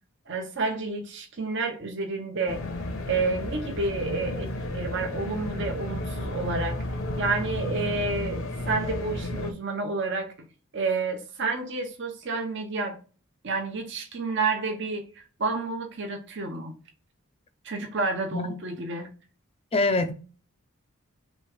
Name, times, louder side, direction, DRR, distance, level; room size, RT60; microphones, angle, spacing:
voice 1, 0.3-2.6 3.1-6.8 7.2-10.3 10.7-13.0 13.4-16.7 17.6-19.1, right 3 dB, 55° right, 0.8 m, -30 dB
sound 1, 2.5-9.5, left 1 dB, 65° left, 0.8 m, -32 dB
voice 2, 19.7-20.1, left 2 dB, 25° left, 0.4 m, -24 dB
3.4 x 3.1 x 4.8 m
head